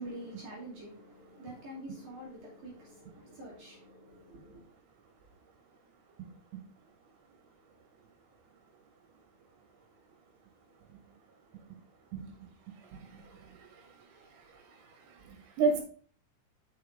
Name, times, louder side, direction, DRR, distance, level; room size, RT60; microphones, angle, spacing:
voice 1, 0.0-4.6, right 1 dB, 50° right, 3.4 m, -46 dB
voice 2, 13.0-13.3 15.3-15.8, right 4 dB, 70° right, 3.7 m, -30 dB
7.1 x 6.2 x 3.7 m
omnidirectional pair, 5.2 m